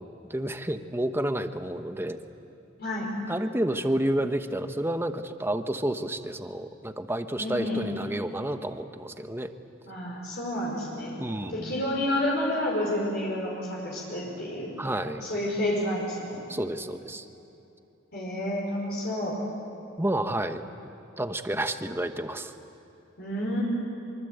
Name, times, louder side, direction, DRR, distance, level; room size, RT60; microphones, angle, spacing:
voice 1, 0.0-2.2 3.3-9.5 11.2-11.7 14.8-15.2 16.5-17.3 20.0-20.6 21.2-22.5, right 1 dB, 10° right, 8 dB, 1.0 m, -30 dB
voice 2, 2.8-3.1 7.4-7.9 9.9-11.2 11.5-14.7 15.2-16.4 18.1-19.4 23.2-23.6, left 1 dB, 55° left, -3 dB, 5.3 m, -30 dB
25.0 x 25.0 x 8.1 m, 2.8 s
head